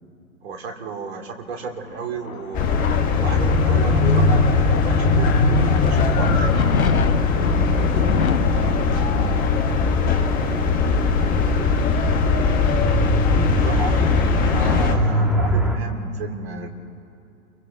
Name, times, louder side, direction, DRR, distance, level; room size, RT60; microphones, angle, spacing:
voice 1, 0.4-2.9 3.2-6.5 13.5-16.7, right 4 dB, 50° right, 4 dB, 2.9 m, -33 dB
sound 1, 1.6-12.9, left 6 dB, 85° left, 0.9 m, -30 dB
sound 2, 2.5-15.0, left 4 dB, 20° left, 1.5 m, -19 dB
voice 2, 7.7-12.1, equal, 25° right, -2 dB, 6.8 m, -35 dB
sound 3, 9.6-15.8, equal, ahead, 1.4 m, -24 dB
30.0 x 23.5 x 3.9 m, 2.8 s
figure-of-eight pair, 125°, 41 cm